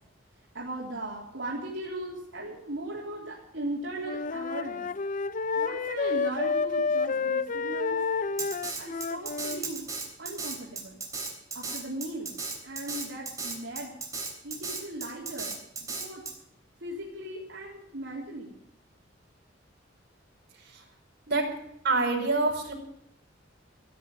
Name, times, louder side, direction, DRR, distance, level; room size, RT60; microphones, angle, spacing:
voice 1, 0.5-4.9 5.6-8.0 8.8-9.9 10.2-11.0 11.5-12.3 12.6-13.9 14.4-16.2 16.8-18.5, right 1 dB, 75° right, -3 dB, 3.6 m, -38 dB
Wind instrument woodwind instrument, 4.0-9.7, left 4 dB, 45° left, 0.6 m, -30 dB
Drum kit, 8.4-16.3, right 4 dB, 15° right, 3.5 m, -35 dB
voice 2, 21.8-22.7, right 3 dB, 60° right, 0 dB, 4.8 m, -26 dB
16.0 x 8.9 x 9.0 m, 0.76 s
head